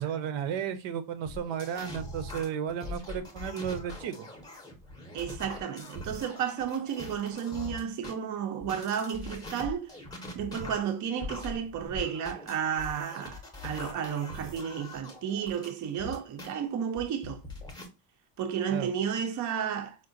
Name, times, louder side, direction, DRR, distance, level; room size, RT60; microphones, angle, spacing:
voice 1, 0.0-4.3 18.7-18.9, right 8 dB, 75° right, 0.7 m, -33 dB
sound 1, 1.3-8.1 8.6-16.5 17.0-17.9, left 2 dB, 10° left, 0.6 m, -42 dB
voice 2, 5.1-9.9 10.3-17.4 18.4-20.0, right 8 dB, 40° right, 0.4 m, -32 dB
4.7 x 2.1 x 2.5 m
cardioid pair, 180°, 45 cm